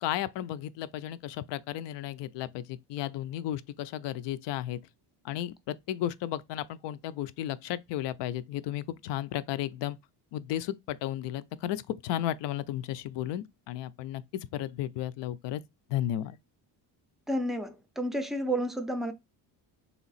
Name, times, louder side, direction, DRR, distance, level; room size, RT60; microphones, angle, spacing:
voice 1, 0.0-4.8 5.2-10.0 10.3-14.2 14.5-15.6 15.9-16.4, left 12 dB, 75° left, 0.5 m, -34 dB
voice 2, 17.3-19.1, right 1 dB, ahead, 0.4 m, -31 dB
3.4 x 3.0 x 4.0 m
cardioid pair, 130°, 43 cm